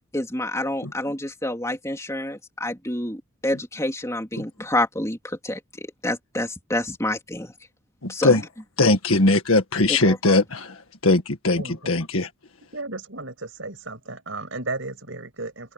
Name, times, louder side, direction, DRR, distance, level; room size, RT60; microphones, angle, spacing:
voice 1, 0.1-7.5 8.1-8.4 9.9-10.4, left 1 dB, 15° left, 3.3 m, -28 dB
voice 2, 8.0-8.4 8.8-10.7 11.0-12.3, left 2 dB, 70° left, 1.8 m, -20 dB
voice 3, 11.6-11.9 12.7-15.7, right 2 dB, 60° right, 6.4 m, -34 dB
open air
head